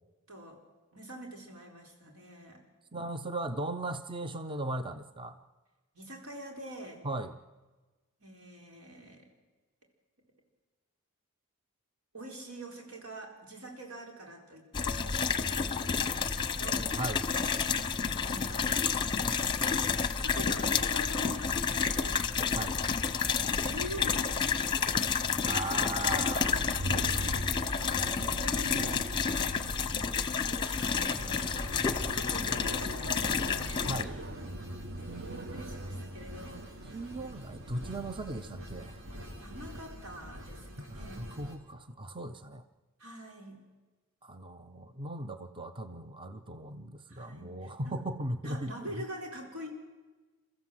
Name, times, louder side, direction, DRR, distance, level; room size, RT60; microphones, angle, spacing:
voice 1, 0.3-0.6 0.9-2.6 5.9-7.0 8.2-9.3 12.1-16.9 18.2-18.8 20.0-22.3 23.2-24.5 24.7-25.1 25.6-25.8 28.2-29.1 30.5-34.6 35.3-36.7 39.4-41.4 43.0-43.6 47.1-47.9 48.4-49.7, equal, 85° right, 1 dB, 4.5 m, -45 dB
voice 2, 2.9-5.4 7.0-7.3 17.0-17.2 22.5-22.8 25.4-27.4 33.9-34.1 36.9-39.0 40.8-42.6 44.2-49.0, right 1 dB, 25° right, 9 dB, 0.7 m, -38 dB
sound 1, 14.7-34.0, left 6 dB, 20° left, 0.8 m, -30 dB
sound 2, 26.3-38.2, right 1 dB, 50° right, 1.1 m, -43 dB
sound 3, 30.8-41.6, equal, 65° right, 3.0 m, -46 dB
29.0 x 14.0 x 7.7 m, 1.3 s
head